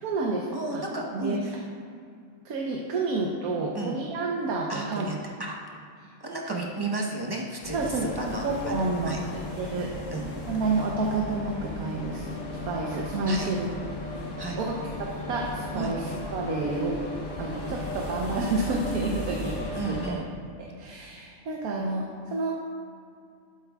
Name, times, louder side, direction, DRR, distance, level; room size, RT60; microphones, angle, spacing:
voice 1, 0.0-0.8 1.1-1.4 2.4-5.1 6.4-6.6 7.7-8.1 8.4-9.9 10.5-13.7 14.6-14.8 15.3-17.0 17.4-20.1 20.6-22.6, right 3 dB, 90° right, -2 dB, 1.3 m, -30 dB
voice 2, 0.5-1.6 3.7-4.0 4.7-5.6 6.2-8.5 9.1-9.2 10.1-10.3 13.3-13.5 14.4-14.6 15.8-15.9 19.8-20.3, right 2 dB, 20° right, -1 dB, 0.8 m, -33 dB
sound 1, 7.6-20.1, left 1 dB, 60° left, 1.4 m, -36 dB
12.0 x 7.9 x 2.3 m, 2.4 s
omnidirectional pair, 1.5 m